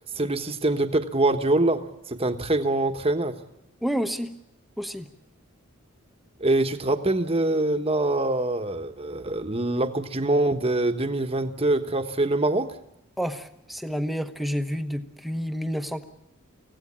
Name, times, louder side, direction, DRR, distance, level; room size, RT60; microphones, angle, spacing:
voice 1, 0.1-3.3 6.4-12.7, right 2 dB, 25° right, 7 dB, 1.3 m, -24 dB
voice 2, 3.8-4.3 4.8-5.1 13.2-16.0, equal, ahead, 7 dB, 1.1 m, -29 dB
24.5 x 16.5 x 8.7 m, 0.87 s
head